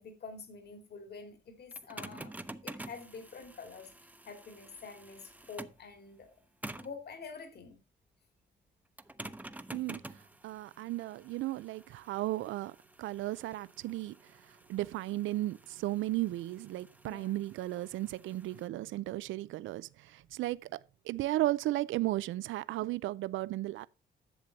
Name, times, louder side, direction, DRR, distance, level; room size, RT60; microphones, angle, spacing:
voice 1, 0.0-2.4 2.6-3.9 4.3-6.3 6.8-7.8 17.0-17.4, left 4 dB, 55° left, 2.7 m, -47 dB
sound 1, 1.7-5.9 6.6-7.0 9.0-18.7, right 1 dB, 10° right, 0.8 m, -49 dB
voice 2, 10.4-12.7 13.0-14.1 14.7-20.7 21.1-23.9, right 16 dB, 80° right, 0.5 m, -35 dB
11.0 x 7.4 x 4.1 m
cardioid pair, 90°, 20 cm